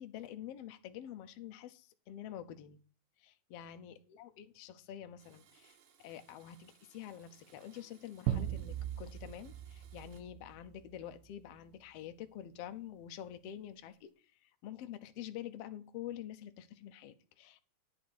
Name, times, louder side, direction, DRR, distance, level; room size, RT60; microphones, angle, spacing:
voice 1, 0.0-2.8 3.2-14.1 14.4-17.6, left 11 dB, 80° left, 8 dB, 1.4 m, -47 dB
Domestic sounds home sounds, 5.2-10.2, right 8 dB, 65° right, 2.3 m, -66 dB
sound 1, 8.3-11.1, right 11 dB, 80° right, 2.0 m, -39 dB
10.0 x 4.3 x 7.7 m, 0.40 s
omnidirectional pair, 3.9 m